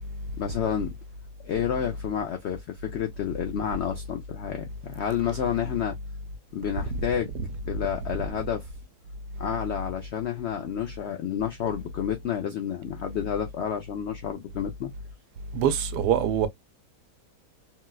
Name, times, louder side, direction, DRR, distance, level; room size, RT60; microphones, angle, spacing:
voice 1, 0.4-0.9 1.4-6.0 6.5-7.3 7.7-8.7 9.4-14.9, left 9 dB, 80° left, 0.6 m, -30 dB
voice 2, 15.5-16.5, right 9 dB, 85° right, 1.2 m, -24 dB
4.0 x 2.2 x 2.2 m
omnidirectional pair, 1.7 m